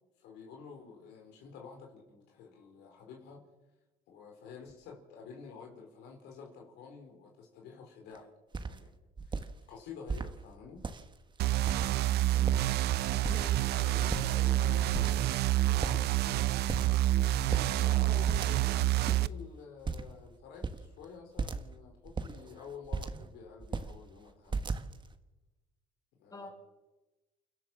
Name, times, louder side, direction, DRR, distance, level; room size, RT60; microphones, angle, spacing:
voice 1, 0.2-3.4 4.1-8.3 8.6-8.9 9.2-10.8 12.1-12.2 13.8-16.8 17.5-24.7 26.2-26.5, left 5 dB, 90° left, 1 dB, 4.8 m, -49 dB
sound 1, 8.1-8.2 8.5-8.8 9.2-9.5 10.1-10.3 10.7-11.2 11.7-12.1 12.3-12.8 13.2-13.7 14.0-14.6 14.9-15.5 15.8-16.0 16.7-17.1 17.4-17.7 18.3-18.8 19.0-19.2 19.8-20.2 20.6-20.8 21.4-21.7 22.0-23.3 23.6-23.9 24.5-25.1, right 4 dB, 25° right, 1.6 m, -36 dB
sound 2, 11.4-19.3, right 14 dB, 75° right, 0.6 m, -28 dB
voice 2, 12.3-13.7 26.3-26.5, left 2 dB, 20° left, 1 dB, 6.4 m, -49 dB
29.5 x 12.5 x 7.5 m, 1.1 s
cardioid pair, 110°, 17 cm